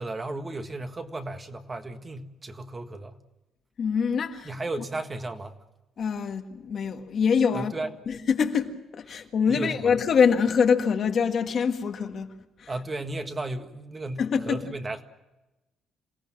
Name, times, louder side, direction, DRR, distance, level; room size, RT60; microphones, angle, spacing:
voice 1, 0.0-3.2 4.4-5.6 7.5-7.9 9.1-9.2 9.5-9.8 12.7-15.0, right 2 dB, 25° right, 1.7 m, -34 dB
voice 2, 3.8-4.5 6.0-7.7 8.1-12.3 12.6-12.7 14.2-14.6, left 6 dB, 50° left, 1.7 m, -24 dB
27.5 x 17.0 x 7.6 m
cardioid pair, 120°, 0 cm